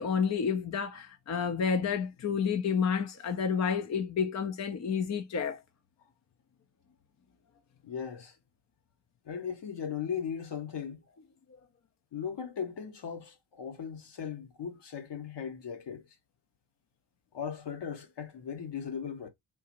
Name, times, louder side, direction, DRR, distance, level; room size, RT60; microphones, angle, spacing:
voice 1, 0.0-5.6, left 6 dB, 35° left, 0.5 m, -30 dB
voice 2, 7.8-8.3 9.3-11.0 12.1-16.0 17.3-19.3, left 7 dB, 55° left, 1.0 m, -38 dB
3.8 x 2.4 x 2.9 m
cardioid pair, 65°, 49 cm